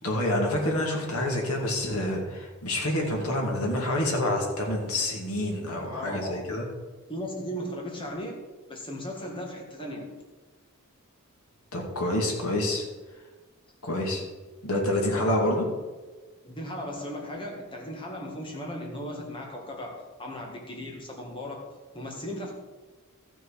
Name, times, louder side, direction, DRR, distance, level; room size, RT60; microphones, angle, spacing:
voice 1, 0.0-6.6 11.7-12.8 13.8-14.2 14.6-15.6, left 1 dB, 80° left, 0 dB, 2.3 m, -27 dB
voice 2, 5.9-6.6 7.1-10.2 16.4-22.5, equal, 25° left, 0 dB, 2.0 m, -37 dB
14.0 x 6.5 x 4.9 m, 1.3 s
head